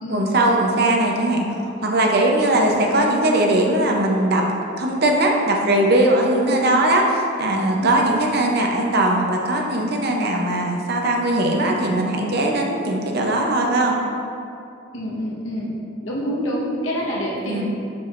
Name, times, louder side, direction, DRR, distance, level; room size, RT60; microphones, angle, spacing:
voice 1, 0.1-1.5 1.8-4.4 4.8-13.9 17.4-17.6, right 1 dB, 55° right, 0 dB, 0.8 m, -19 dB
voice 2, 2.5-2.9 7.8-8.1 14.9-15.7 16.0-17.7, equal, 75° left, -5 dB, 1.3 m, -27 dB
6.8 x 6.1 x 2.6 m, 2.6 s
head